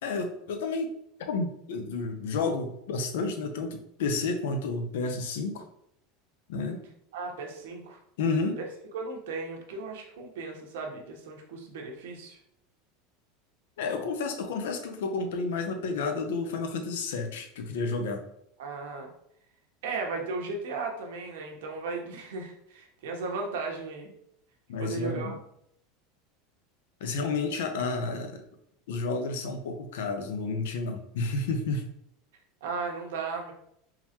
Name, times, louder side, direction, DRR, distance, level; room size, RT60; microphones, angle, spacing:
voice 1, 0.0-0.9 1.3-5.7 6.5-6.8 8.2-8.6 13.8-18.2 24.7-25.4 27.0-28.4 28.9-31.9, left 3 dB, 90° left, 6 dB, 0.6 m, -31 dB
voice 2, 7.1-8.0 8.9-12.4 18.6-19.1 19.8-24.1 24.8-25.3 32.6-33.5, right 4 dB, 90° right, 1 dB, 0.9 m, -36 dB
3.8 x 3.0 x 2.8 m, 0.73 s
supercardioid pair, 160°, 0 cm